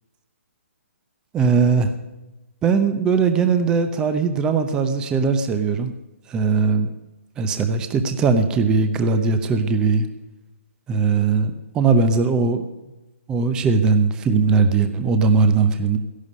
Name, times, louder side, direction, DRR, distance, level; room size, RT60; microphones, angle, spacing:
voice 1, 1.3-1.9 2.6-5.9 6.3-6.9 7.4-10.1 10.9-12.6 13.3-16.0, right 4 dB, 10° right, 9 dB, 0.8 m, -19 dB
15.0 x 11.5 x 5.4 m, 1.1 s
hypercardioid pair, 165°, 7 cm